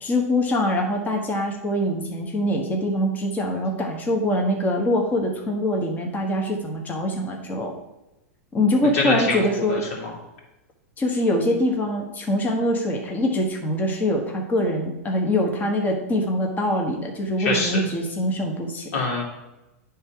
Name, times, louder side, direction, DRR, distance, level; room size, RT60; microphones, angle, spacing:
voice 1, 0.0-7.8 8.5-9.9 11.0-19.0, left 1 dB, 20° left, 1 dB, 1.3 m, -24 dB
voice 2, 8.9-10.1 17.4-17.8 18.9-19.2, left 3 dB, 70° left, -2 dB, 2.4 m, -25 dB
9.7 x 3.6 x 4.5 m, 1.0 s
hypercardioid pair, 115°, 8 cm